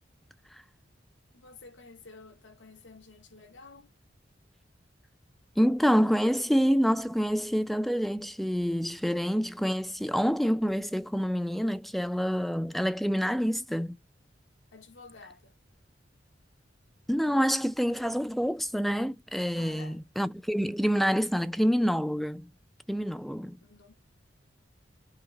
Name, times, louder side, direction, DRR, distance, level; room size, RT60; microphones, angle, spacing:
voice 1, 1.3-3.9 14.7-15.6 19.5-20.0 23.6-23.9, left 4 dB, 85° left, 1.0 m, -51 dB
voice 2, 5.6-14.0 17.1-22.5 22.9-23.6, equal, ahead, 0.3 m, -27 dB
5.8 x 2.1 x 3.7 m
head